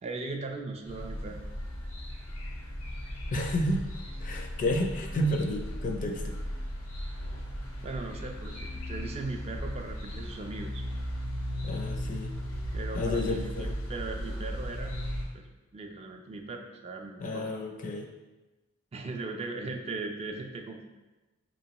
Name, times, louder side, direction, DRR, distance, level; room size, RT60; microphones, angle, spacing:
voice 1, 0.0-1.5 7.8-10.8 12.7-14.9 15.3-15.5 15.7-17.5 18.9-20.9, right 3 dB, 30° right, 3 dB, 0.3 m, -38 dB
sound 1, 0.8-15.2, equal, 85° left, 0.9 m, -36 dB
voice 2, 3.3-3.8 4.2-6.4 11.6-12.3 12.9-13.7 17.2-18.1, left 1 dB, 40° left, 2 dB, 0.4 m, -31 dB
4.3 x 3.0 x 2.9 m, 1.1 s
head